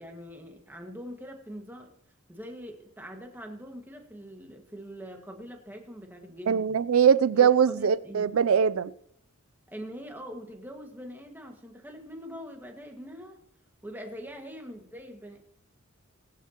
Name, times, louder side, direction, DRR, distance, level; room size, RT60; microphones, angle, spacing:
voice 1, 0.0-1.9 2.3-6.8 7.3-8.3 9.7-13.4 13.8-15.4, equal, 10° right, 1.7 m, -43 dB
voice 2, 6.5-8.9, right 7 dB, 80° right, 0.4 m, -22 dB
20.5 x 9.4 x 3.0 m
head